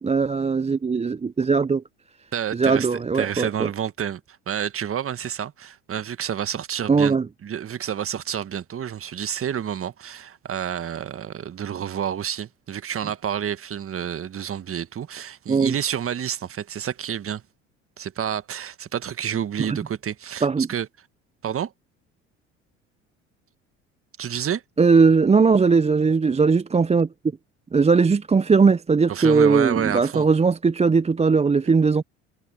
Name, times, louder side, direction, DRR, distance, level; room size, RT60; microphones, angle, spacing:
voice 1, 0.0-1.8 2.5-3.7 6.9-7.3 15.5-15.7 19.6-19.8 20.4-20.7 24.8-27.1 27.7-32.0, right 5 dB, 20° right, 0.8 m, -19 dB
voice 2, 2.3-7.2 7.4-17.4 18.0-20.9 21.4-21.7 24.2-24.6 29.1-30.3, right 9 dB, 40° right, 1.7 m, -29 dB
hypercardioid pair, 65°, 36 cm